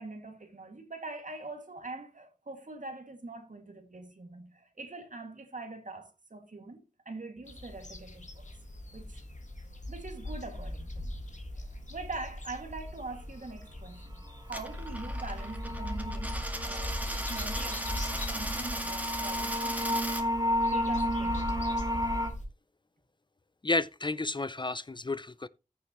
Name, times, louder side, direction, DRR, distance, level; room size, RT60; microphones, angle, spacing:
voice 1, 0.0-8.4 8.9-9.2 9.9-11.1 11.6-20.3 20.7-21.6, right 3 dB, 70° right, 2.2 m, -43 dB
sound 1, 7.5-22.5, left 1 dB, 60° left, 2.0 m, -40 dB
sound 2, 14.3-14.4 14.6-22.3, equal, 30° right, 2.7 m, -33 dB
Coin (dropping), 14.4-20.2, right 1 dB, 10° right, 1.9 m, -37 dB
voice 2, 23.6-25.5, left 2 dB, 35° left, 0.4 m, -31 dB
14.5 x 6.7 x 3.0 m
wide cardioid pair, 60°, 14 cm